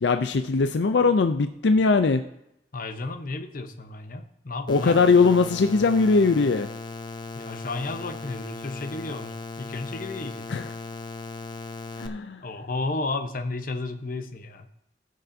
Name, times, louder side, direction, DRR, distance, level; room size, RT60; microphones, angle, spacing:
voice 1, 0.0-2.2 4.7-6.7 10.5-10.7 12.0-12.4, left 4 dB, 80° left, 8 dB, 0.5 m, -20 dB
voice 2, 2.7-5.0 7.3-10.5 12.4-14.7, left 2 dB, 50° left, 7 dB, 0.9 m, -33 dB
sound 1, 4.7-12.1, left 3 dB, 25° left, 0.6 m, -37 dB
19.0 x 6.5 x 2.7 m, 0.79 s
head